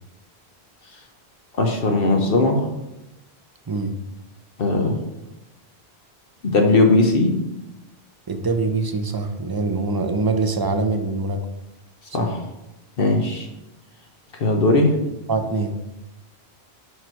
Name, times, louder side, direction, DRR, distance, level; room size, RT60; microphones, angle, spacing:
voice 1, 1.6-2.7 4.6-5.0 6.4-7.4 12.1-12.4 13.0-13.5 14.4-14.9, left 2 dB, 65° left, 2 dB, 1.1 m, -18 dB
voice 2, 3.7-4.0 8.3-11.5 12.2-12.3 15.3-15.7, right 3 dB, 30° right, 7 dB, 0.4 m, -24 dB
6.0 x 5.0 x 4.4 m, 0.93 s
omnidirectional pair, 1.1 m